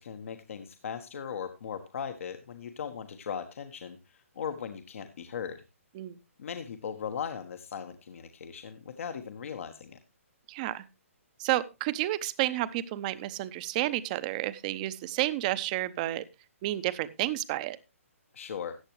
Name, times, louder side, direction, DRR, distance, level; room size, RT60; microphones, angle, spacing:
voice 1, 0.0-5.6 6.4-10.0 18.3-18.7, left 7 dB, 65° left, 7 dB, 1.3 m, -38 dB
voice 2, 10.5-10.8 11.4-16.2 16.6-17.8, right 15 dB, 30° right, 15 dB, 0.7 m, -31 dB
14.5 x 9.0 x 3.1 m, 0.27 s
hypercardioid pair, 150°, 8 cm